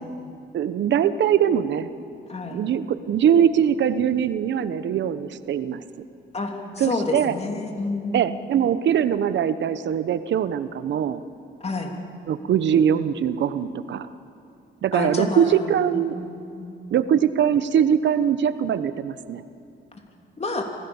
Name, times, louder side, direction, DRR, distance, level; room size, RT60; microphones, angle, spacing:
voice 1, 0.5-1.9 2.4-5.8 6.8-7.4 8.1-11.2 12.3-14.1 14.8-16.2 16.9-19.4, right 9 dB, 65° right, 13 dB, 1.0 m, -22 dB
voice 2, 6.3-8.3 11.6-11.9 14.9-16.1 16.5-16.8 19.9-20.0 20.4-20.6, left 3 dB, 30° left, 3 dB, 3.1 m, -29 dB
25.5 x 16.0 x 7.2 m, 2.6 s
cardioid pair, 90°, 20 cm